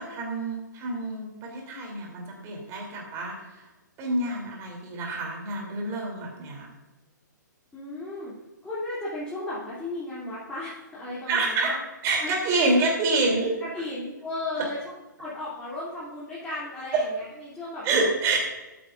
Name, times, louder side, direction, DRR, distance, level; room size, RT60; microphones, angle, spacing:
voice 1, 0.0-3.6 4.0-6.7 11.3-11.7 12.0-13.6 16.9-17.0 17.8-18.4, right 2 dB, 25° right, 0 dB, 3.3 m, -27 dB
voice 2, 7.7-8.3 8.6-11.8 12.2-12.3 13.6-14.8 15.2-18.1, left 2 dB, 10° left, -9 dB, 3.0 m, -35 dB
13.0 x 9.2 x 2.6 m, 1.1 s
figure-of-eight pair, 125°, 10 cm